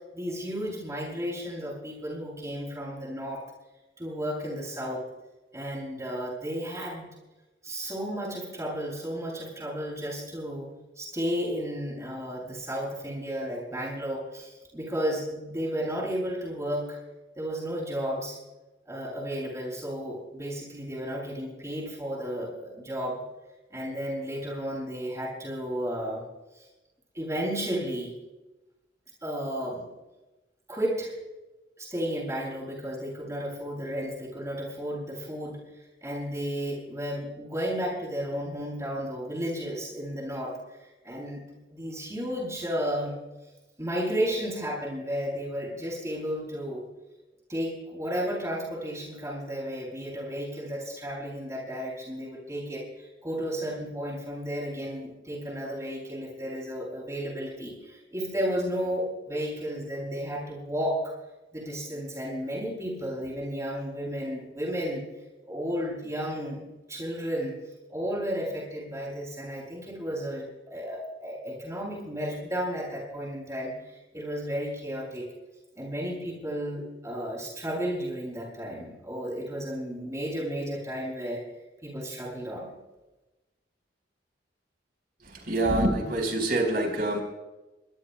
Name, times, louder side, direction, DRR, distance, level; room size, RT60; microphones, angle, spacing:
voice 1, 0.1-3.4 4.0-5.0 5.5-7.1 7.6-17.0 17.4-18.4 18.9-23.2 23.7-26.2 27.1-28.1 29.2-29.9 30.7-31.1 31.8-41.4 41.7-43.2 43.8-46.8 47.5-61.1 61.5-65.0 65.5-66.6 66.9-67.6 67.9-75.3 75.8-81.4 81.8-82.7, equal, 15° right, -4 dB, 7.3 m, -33 dB
voice 2, 85.2-87.2, right 1 dB, 55° right, 3 dB, 4.4 m, -26 dB
23.5 x 21.5 x 2.2 m, 1.1 s
head